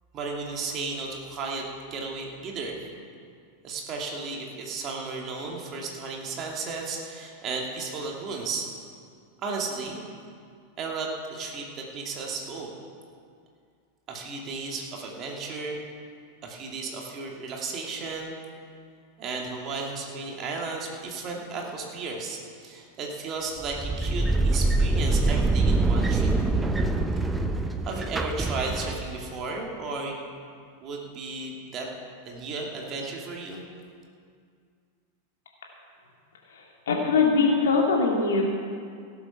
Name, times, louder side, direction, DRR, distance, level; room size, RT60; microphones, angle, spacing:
voice 1, 0.1-2.8 3.6-8.7 9.4-10.1 10.8-12.7 14.1-15.9 16.4-18.4 19.2-26.3 27.8-30.3 30.8-31.9 32.3-33.6, right 4 dB, 30° right, 0 dB, 2.4 m, -34 dB
sound 1, 23.6-29.2, right 2 dB, 10° right, 0.8 m, -24 dB
voice 2, 36.5-38.5, left 4 dB, 60° left, 0 dB, 2.2 m, -22 dB
17.0 x 7.5 x 5.9 m, 2.2 s
figure-of-eight pair, 90°, 0 cm